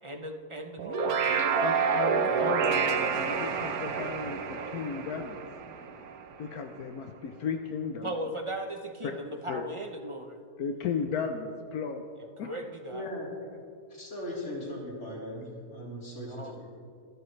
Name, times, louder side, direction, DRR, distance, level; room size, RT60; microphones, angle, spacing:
voice 1, 0.0-1.7 2.3-3.1 8.0-10.4 12.4-13.0 16.3-16.5, equal, 25° right, 5 dB, 0.7 m, -37 dB
sound 1, 0.8-6.3, right 6 dB, 75° right, 1.3 m, -29 dB
voice 2, 1.6-5.4 6.4-8.1 9.0-9.2 9.5-9.7 10.6-12.0 12.4-12.6, left 6 dB, 80° left, 5 dB, 1.3 m, -35 dB
voice 3, 12.9-13.3 13.9-16.8, left 1 dB, 50° left, -5 dB, 4.2 m, -39 dB
26.0 x 13.0 x 3.3 m, 2.3 s
omnidirectional pair, 1.6 m